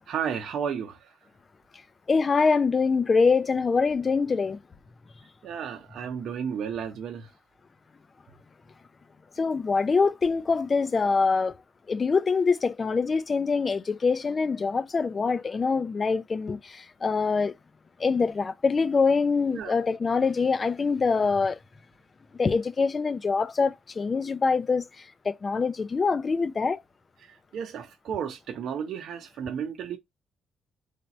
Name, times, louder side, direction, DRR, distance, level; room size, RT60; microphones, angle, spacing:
voice 1, 0.1-1.1 5.4-7.3 19.5-19.8 27.2-30.0, right 7 dB, 70° right, 0.7 m, -33 dB
voice 2, 2.1-4.6 9.4-11.5 11.9-17.5 18.0-21.6 22.4-26.8, left 4 dB, 35° left, 0.5 m, -24 dB
3.3 x 2.7 x 4.1 m
cardioid pair, 90°, 0 cm